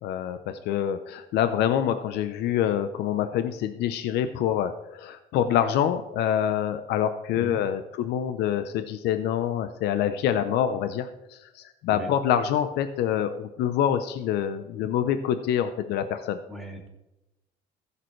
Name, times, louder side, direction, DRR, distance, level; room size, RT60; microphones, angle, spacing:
voice 1, 0.0-16.4, left 9 dB, 80° left, 10 dB, 0.7 m, -26 dB
voice 2, 16.5-16.9, right 1 dB, ahead, -1 dB, 2.5 m, -37 dB
15.0 x 6.8 x 3.2 m, 0.95 s
cardioid pair, 110°, 17 cm